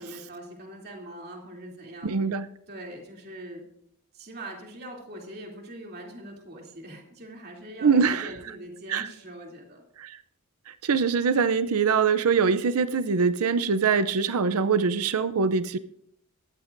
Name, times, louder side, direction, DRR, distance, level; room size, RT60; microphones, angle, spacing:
voice 1, 0.0-2.1 2.7-3.6 4.1-9.8, right 1 dB, 45° right, 0 dB, 2.9 m, -42 dB
voice 2, 2.0-2.5 7.8-8.3 8.9-9.1 10.0-10.2 10.7-15.8, right 5 dB, 80° right, 13 dB, 0.6 m, -23 dB
19.0 x 14.0 x 2.6 m, 0.71 s
head